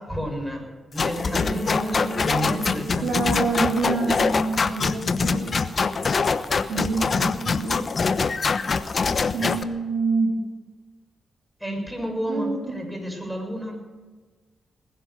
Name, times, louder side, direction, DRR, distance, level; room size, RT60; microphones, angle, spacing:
voice 1, 0.0-3.8 6.1-6.3 9.1-9.5 11.6-13.9, equal, ahead, 2 dB, 6.8 m, -32 dB
sound 1, 1.0-9.6, left 4 dB, 50° left, 1.0 m, -24 dB
Bowed string instrument, 1.0-4.9, right 3 dB, 25° left, 5.5 m, -37 dB
voice 2, 3.0-5.5 6.7-7.8 9.3-10.3 12.3-12.6, right 3 dB, 75° right, 0 dB, 3.4 m, -26 dB
20.0 x 10.5 x 6.6 m, 1.3 s
hypercardioid pair, 45°, 0 cm